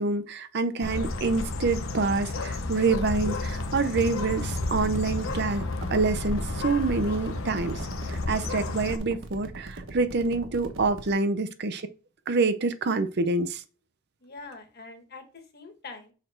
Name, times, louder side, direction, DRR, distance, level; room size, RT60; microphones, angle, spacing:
voice 1, 0.0-5.6 5.9-7.8 8.1-11.9 12.3-13.6, right 3 dB, 55° right, 0.7 m, -26 dB
Bird, 0.8-9.0, left 2 dB, 90° left, 1.0 m, -32 dB
sound 1, 3.8-11.1, right 2 dB, 70° right, 1.3 m, -41 dB
voice 2, 14.2-16.1, left 3 dB, 50° left, 1.8 m, -45 dB
6.6 x 4.7 x 4.4 m
head